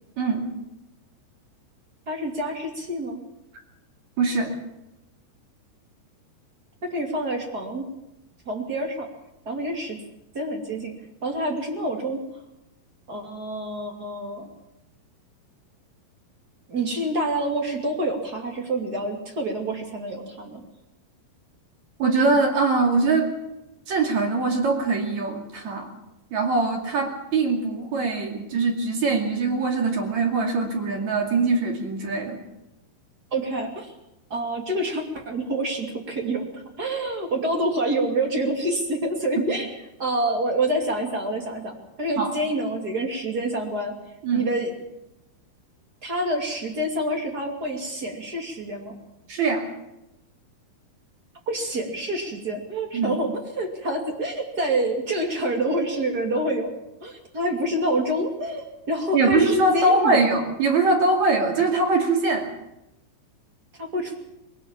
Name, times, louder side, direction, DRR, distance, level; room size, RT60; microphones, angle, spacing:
voice 1, 0.2-0.5 4.2-4.5 22.0-23.3 23.9-25.9 26.3-32.4 42.2-42.3 44.2-44.4 49.3-49.6 52.9-53.2 59.1-62.5, right 3 dB, 45° right, 2 dB, 3.3 m, -22 dB
voice 2, 2.1-3.2 6.8-7.9 8.5-9.1 9.5-10.0 10.3-10.9 11.2-12.2 13.1-14.5 16.7-20.6 33.3-33.9 34.3-36.5 36.8-39.7 40.0-44.0 44.3-44.7 46.0-49.0 51.5-56.7 57.0-60.2 63.8-64.2, right 1 dB, 25° right, 2 dB, 2.3 m, -27 dB
21.0 x 19.0 x 7.3 m, 0.90 s
omnidirectional pair, 5.1 m